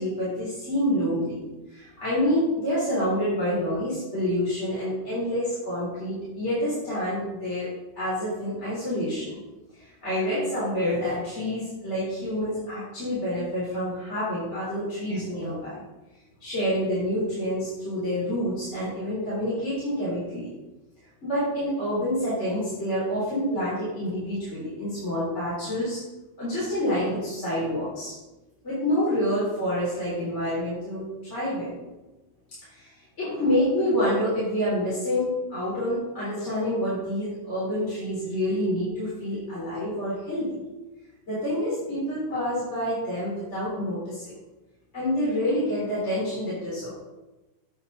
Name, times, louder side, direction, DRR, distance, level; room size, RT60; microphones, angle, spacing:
voice 1, 0.0-1.4 1.7-7.7 7.9-9.4 9.7-15.8 16.4-20.5 21.2-26.0 26.4-28.1 28.6-31.7 32.7-40.6 41.3-44.3 44.9-46.9, equal, 15° left, -10 dB, 2.9 m, -27 dB
9.6 x 8.2 x 3.9 m, 1.1 s
omnidirectional pair, 5.7 m